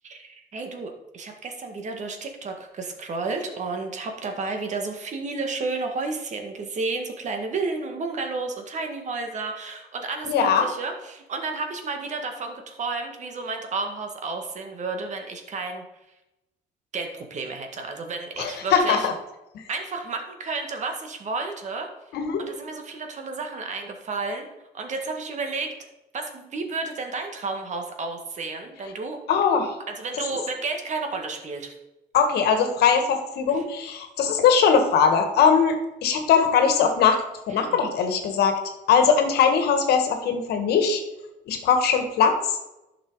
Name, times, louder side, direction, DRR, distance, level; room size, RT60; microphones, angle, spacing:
voice 1, 0.0-15.8 16.9-19.1 19.7-21.9 22.4-24.5 24.7-25.7 26.1-29.2 29.9-31.7 33.5-33.6 37.5-37.8, right 3 dB, 45° right, 4 dB, 1.8 m, -32 dB
voice 2, 10.3-10.6 18.4-19.1 22.1-22.4 29.3-29.8 32.1-35.8 36.0-37.2 37.5-38.6 38.9-41.0 41.5-42.6, left 6 dB, 75° left, 6 dB, 1.6 m, -20 dB
11.0 x 6.1 x 4.7 m, 0.94 s
cardioid pair, 110°, 17 cm